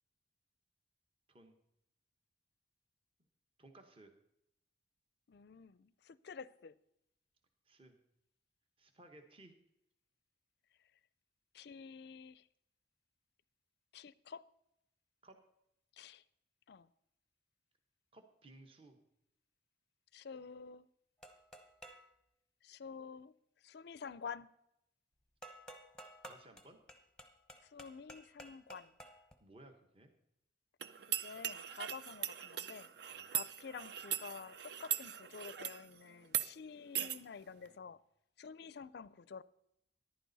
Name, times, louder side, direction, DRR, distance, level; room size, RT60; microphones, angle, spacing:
voice 1, 3.6-4.1 7.7-8.0 8.8-9.5 15.2-15.4 18.1-19.0 26.2-26.8 29.4-30.1 33.1-33.3 37.4-37.9, right 2 dB, 30° right, 1.1 m, -59 dB
voice 2, 5.3-6.8 11.5-12.5 13.9-14.5 15.9-16.2 16.7-16.9 20.1-20.9 22.6-23.3 23.6-24.5 27.6-29.0 31.2-32.9 33.3-38.0 38.4-39.4, left 5 dB, 55° left, 0.4 m, -49 dB
sound 1, 21.2-22.1 25.4-29.4, right 1 dB, 5° left, 0.9 m, -54 dB
sound 2, 30.8-35.8 36.3-36.5 37.0-37.2, right 10 dB, 55° right, 0.5 m, -40 dB
14.0 x 11.0 x 4.0 m
head